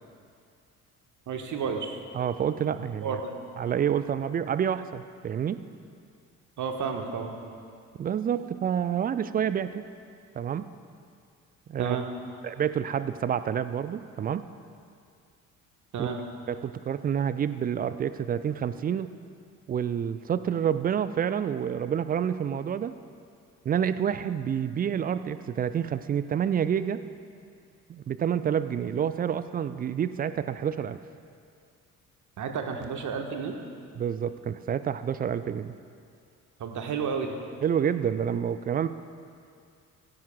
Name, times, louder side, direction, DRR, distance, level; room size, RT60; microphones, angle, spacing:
voice 1, 1.3-2.0 3.0-3.3 6.6-7.3 11.8-12.0 15.9-16.2 32.4-33.6 36.6-37.3, right 6 dB, 45° right, 3 dB, 1.5 m, -31 dB
voice 2, 2.1-3.2 3.6-5.6 8.0-9.8 10.4-10.7 11.7-12.0 12.4-14.4 16.0-16.1 16.5-19.1 19.7-22.9 23.7-27.0 27.9-31.0 34.0-35.7 37.6-38.9, right 8 dB, 20° right, 13 dB, 0.4 m, -28 dB
18.0 x 16.0 x 2.4 m, 2.3 s
figure-of-eight pair, 45°, 43 cm